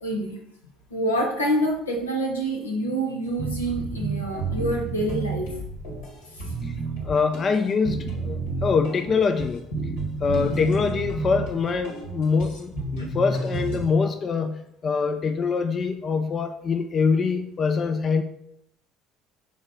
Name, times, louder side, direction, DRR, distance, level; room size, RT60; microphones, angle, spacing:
voice 1, 0.0-0.4 0.9-5.5 6.3-6.5 10.4-10.5 13.0-13.1, right 1 dB, 90° left, 1 dB, 1.0 m, -27 dB
sound 1, 3.4-13.9, right 3 dB, 75° left, 1.8 m, -31 dB
voice 2, 7.0-9.7 10.2-18.2, left 5 dB, 40° left, 8 dB, 0.5 m, -24 dB
6.2 x 3.9 x 3.9 m, 0.76 s
figure-of-eight pair, 60°, 0 cm